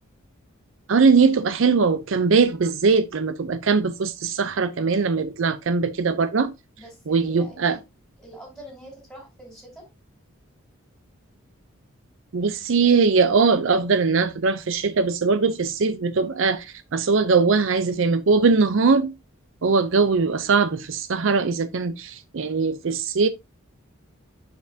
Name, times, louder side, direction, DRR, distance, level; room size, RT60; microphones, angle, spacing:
voice 1, 0.9-6.5 7.1-7.8 12.3-19.1 19.6-23.3, right 4 dB, 60° right, 0.5 m, -21 dB
voice 2, 6.8-7.8 8.2-9.9, equal, ahead, 4.5 m, -45 dB
6.9 x 6.8 x 2.7 m
head